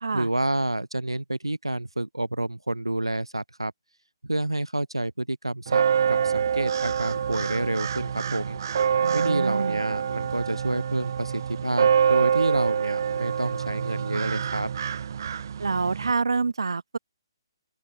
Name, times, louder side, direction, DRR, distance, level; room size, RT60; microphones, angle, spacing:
voice 1, 0.1-3.7 4.2-8.6 9.1-14.7, right 1 dB, 85° right, 2.6 m, -29 dB
sound 1, 5.7-16.1, right 7 dB, 50° right, 0.6 m, -26 dB
voice 2, 9.0-9.8 15.6-17.0, right 4 dB, 70° right, 0.9 m, -27 dB
figure-of-eight pair, 135°, 3 cm